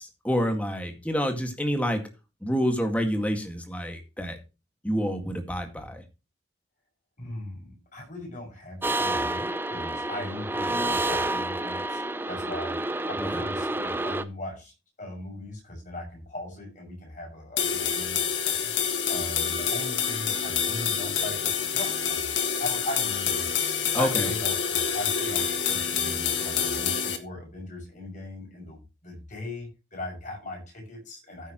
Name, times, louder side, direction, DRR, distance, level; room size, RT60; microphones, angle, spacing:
voice 1, 0.0-2.0 2.4-4.4 4.8-6.0 13.2-13.4 23.9-24.3, equal, 5° left, 5 dB, 1.9 m, -28 dB
voice 2, 7.2-12.0 12.3-23.5 23.9-31.5, left 1 dB, 40° left, 1 dB, 6.6 m, -39 dB
sound 1, 8.8-14.2, right 2 dB, 10° right, 0.6 m, -29 dB
sound 2, 17.6-27.2, left 7 dB, 70° left, 1.8 m, -27 dB
15.0 x 8.5 x 3.1 m, 0.29 s
head